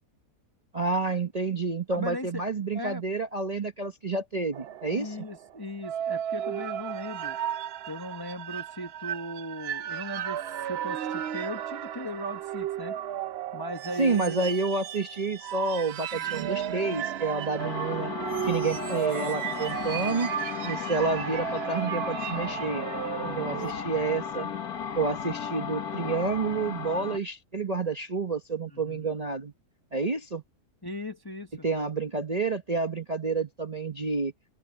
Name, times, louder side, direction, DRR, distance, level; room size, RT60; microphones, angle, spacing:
voice 1, 0.7-5.2 14.0-20.3 20.6-22.9 23.3-24.5 24.9-29.5 29.9-30.4 31.6-34.3, right 4 dB, 30° right, 0.9 m, -29 dB
voice 2, 1.9-2.5 2.7-3.0 4.9-7.4 7.9-12.9 13.5-14.5 16.1-16.5 28.6-29.0 30.8-31.7, left 1 dB, 15° left, 0.9 m, -38 dB
sound 1, 4.5-23.7, right 10 dB, 80° right, 0.5 m, -34 dB
sound 2, 17.6-27.2, left 7 dB, 70° left, 1.7 m, -35 dB
open air
omnidirectional pair, 1.7 m